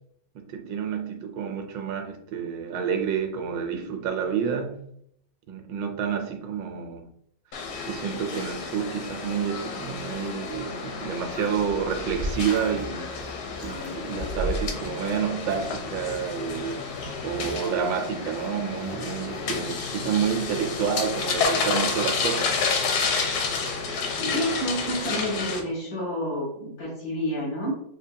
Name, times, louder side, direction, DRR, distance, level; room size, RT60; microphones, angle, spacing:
voice 1, 0.3-4.8 5.5-7.1 7.9-13.1 13.6-16.9 17.2-22.5, right 7 dB, 80° right, 5 dB, 1.4 m, -29 dB
sound 1, 7.5-25.6, left 5 dB, 65° left, 1.1 m, -30 dB
sound 2, 10.5-14.9, equal, 40° left, 0.9 m, -35 dB
sound 3, 11.9-20.1, right 2 dB, 20° right, 0.8 m, -45 dB
voice 2, 24.2-27.7, equal, 85° left, -2 dB, 2.5 m, -29 dB
6.8 x 2.7 x 2.2 m, 0.69 s
omnidirectional pair, 2.0 m